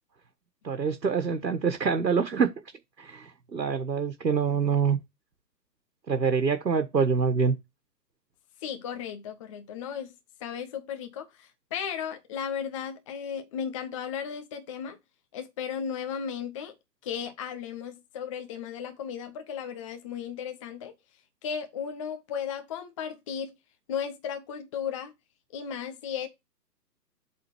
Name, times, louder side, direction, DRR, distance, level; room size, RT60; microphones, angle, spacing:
voice 1, 0.6-2.6 3.0-5.0 6.1-7.6, right 6 dB, 90° right, 1.5 m, -25 dB
voice 2, 8.6-10.1 10.4-15.0 15.3-16.7 17.0-20.9 21.4-23.5 23.9-25.1 25.5-26.3, left 7 dB, 20° left, 0.7 m, -35 dB
8.0 x 4.0 x 4.4 m
figure-of-eight pair, 135°, 49 cm